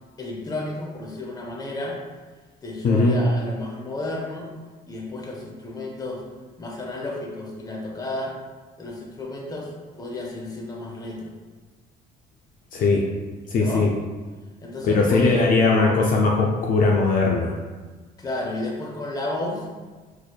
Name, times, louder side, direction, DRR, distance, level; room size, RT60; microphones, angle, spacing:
voice 1, 0.2-2.0 2.6-4.5 4.9-6.2 6.6-8.4 8.8-11.3 13.6-13.9 14.6-15.4 18.2-19.7, left 2 dB, 20° left, -1 dB, 0.8 m, -32 dB
voice 2, 2.8-3.2 12.7-13.1 13.5-13.9 14.8-17.6, left 3 dB, 55° left, -1 dB, 0.4 m, -19 dB
3.9 x 3.1 x 2.3 m, 1.4 s
cardioid pair, 110°, 17 cm